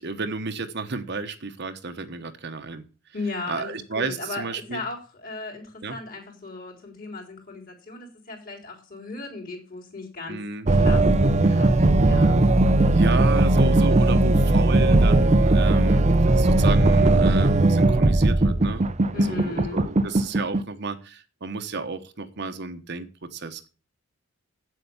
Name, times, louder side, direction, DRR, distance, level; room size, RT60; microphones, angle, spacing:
voice 1, 0.0-2.8 3.5-4.8 5.8-6.0 10.3-10.7 11.5-11.7 12.9-18.9 19.2-23.7, right 3 dB, 55° right, 8 dB, 1.1 m, -32 dB
voice 2, 3.1-10.4 10.7-12.4 19.1-19.8, left 3 dB, 45° left, 1 dB, 3.8 m, -36 dB
sound 1, 10.7-20.6, right 2 dB, 35° right, 0.6 m, -18 dB
8.4 x 7.9 x 7.0 m, 0.35 s
head